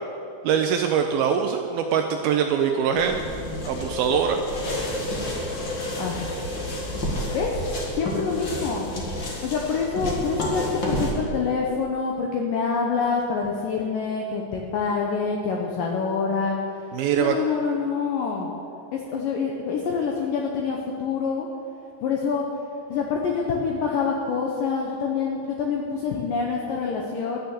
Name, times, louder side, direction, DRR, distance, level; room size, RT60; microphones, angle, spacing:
voice 1, 0.4-3.2 3.7-4.4 16.9-17.4, right 7 dB, 85° right, 5 dB, 2.1 m, -23 dB
sound 1, 2.9-11.1, left 1 dB, 55° left, 1.3 m, -30 dB
voice 2, 6.0-6.4 7.3-7.6 7.9-8.9 9.4-16.6 17.2-18.5 18.9-21.5 22.0-22.5 22.9-27.4, left 5 dB, 75° left, 0 dB, 2.1 m, -26 dB
12.5 x 6.7 x 9.3 m, 2.5 s
omnidirectional pair, 5.1 m